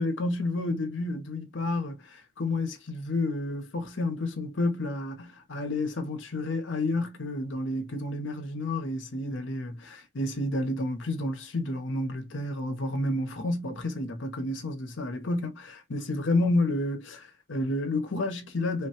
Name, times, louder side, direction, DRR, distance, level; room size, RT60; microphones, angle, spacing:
voice 1, 0.0-2.0 2.4-18.9, left 2 dB, 75° left, 0.8 m, -30 dB
3.5 x 2.3 x 2.8 m
head